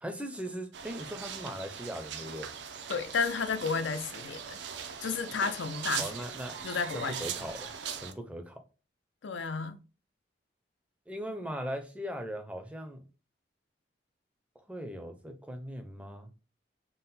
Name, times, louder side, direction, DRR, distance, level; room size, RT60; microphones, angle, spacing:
voice 1, 0.0-2.5 6.0-6.7 6.9-7.7 8.0-8.6 11.1-13.0 14.7-16.3, equal, 5° right, 0.4 m, -39 dB
sound 1, 0.7-8.1, right 7 dB, 80° right, 0.5 m, -40 dB
voice 2, 2.9-4.6 5.0-6.1 6.6-7.3 9.2-9.8, left 5 dB, 90° left, 0.4 m, -32 dB
3.7 x 2.1 x 4.0 m
head